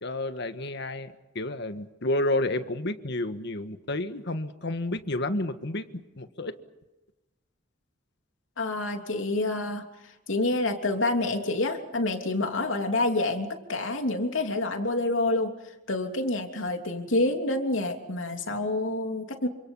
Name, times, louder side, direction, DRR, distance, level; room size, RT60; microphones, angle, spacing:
voice 1, 0.0-6.6, left 1 dB, 60° left, 9 dB, 1.6 m, -30 dB
voice 2, 8.6-9.9 10.3-15.5 15.9-19.5, left 2 dB, 85° left, 4 dB, 3.1 m, -27 dB
28.0 x 26.5 x 5.6 m, 1.0 s
head